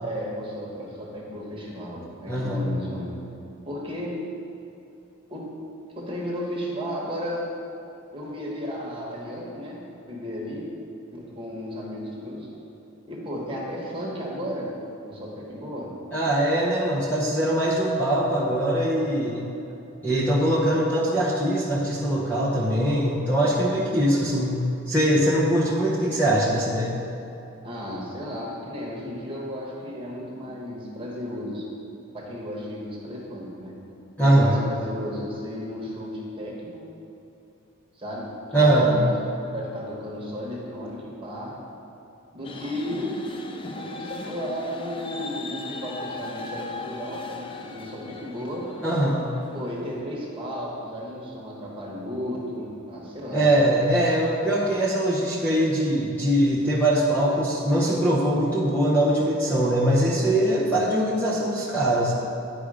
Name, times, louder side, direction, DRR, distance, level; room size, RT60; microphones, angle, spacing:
voice 1, 0.0-3.2 3.6-4.2 5.3-5.5 6.0-7.5 8.1-9.8 10.1-10.7 11.1-12.5 13.1-14.7 15.0-15.9 27.6-31.7 32.1-33.8 34.2-36.8 37.9-39.0 39.5-41.6 42.3-43.3 43.7-48.7 49.5-53.5, equal, 25° right, -4 dB, 1.4 m, -34 dB
voice 2, 2.3-2.6 16.1-19.5 20.0-24.6 24.9-26.9 34.2-34.6 38.5-38.9 48.8-49.2 53.3-62.1, right 1 dB, 10° left, -6 dB, 0.8 m, -22 dB
sound 1, 42.4-50.0, left 3 dB, 25° left, 0.4 m, -38 dB
9.9 x 5.1 x 4.9 m, 2.9 s
head